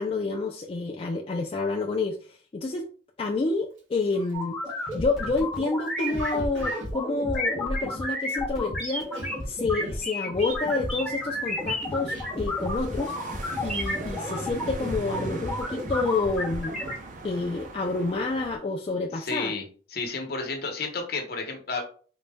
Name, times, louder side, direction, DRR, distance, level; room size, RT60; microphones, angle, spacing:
voice 1, 0.0-2.9 3.2-4.6 4.9-9.1 9.5-13.1 13.6-16.8 17.2-19.5, left 3 dB, 30° left, 1 dB, 0.3 m, -29 dB
Cough, 3.7-3.8 4.1-8.6 8.8-12.7 12.9-13.3 13.6-14.1 14.5-15.1 15.4-17.1 17.4-17.7, right 1 dB, 80° right, 0.9 m, -45 dB
sound 1, 4.3-16.9, left 1 dB, ahead, 1.0 m, -31 dB
sound 2, 10.4-18.6, right 2 dB, 45° right, 0.6 m, -41 dB
voice 2, 19.1-19.6 19.9-21.8, left 3 dB, 55° left, 2 dB, 0.8 m, -31 dB
3.9 x 2.1 x 3.4 m, 0.41 s
head